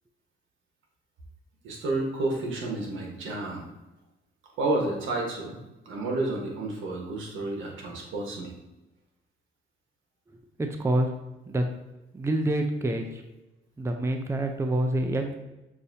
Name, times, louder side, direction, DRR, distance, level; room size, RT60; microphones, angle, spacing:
voice 1, 1.6-3.7 4.6-5.6 5.8-8.5, right 2 dB, 80° right, 0 dB, 1.3 m, -30 dB
voice 2, 10.6-11.1 11.5-11.6 12.1-13.2 13.8-15.3, right 1 dB, 15° right, 5 dB, 0.5 m, -27 dB
6.7 x 2.7 x 2.7 m, 1.0 s
cardioid pair, 90°, 20 cm